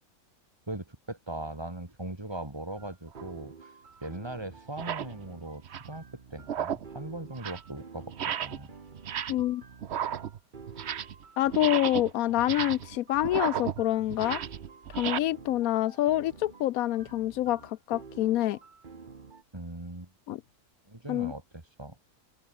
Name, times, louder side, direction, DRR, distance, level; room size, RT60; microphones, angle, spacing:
voice 1, 0.7-3.7 4.0-6.0 6.3-8.7 19.5-20.1 20.9-22.0, right 2 dB, 15° right, 2.5 m, -40 dB
sound 1, 2.8-19.4, right 5 dB, 35° right, 1.4 m, -50 dB
sound 2, 3.1-3.3 4.0-4.1 4.7-5.1 5.5-6.0 6.4-6.9 7.3-7.7 8.1-8.7 8.9-9.5 9.8-11.2 11.5-15.2, right 9 dB, 55° right, 0.9 m, -34 dB
voice 2, 9.3-9.6 11.4-14.4 14.9-18.6 20.3-20.4 21.1-21.3, left 14 dB, 75° left, 1.0 m, -27 dB
omnidirectional pair, 1.6 m